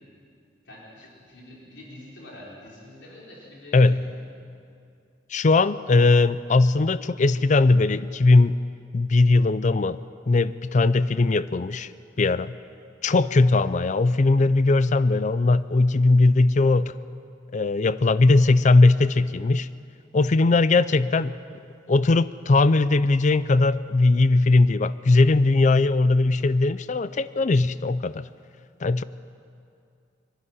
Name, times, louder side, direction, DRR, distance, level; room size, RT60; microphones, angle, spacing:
voice 1, 0.6-4.3 20.8-21.0, left 1 dB, 70° left, -4 dB, 4.3 m, -45 dB
voice 2, 5.3-8.5 8.9-10.0 10.3-11.9 12.2-12.6 13.0-16.9 17.5-19.7 20.1-21.3 21.9-28.2 28.8-29.0, left 3 dB, 40° left, 16 dB, 0.5 m, -19 dB
24.5 x 12.0 x 9.8 m, 2.4 s
head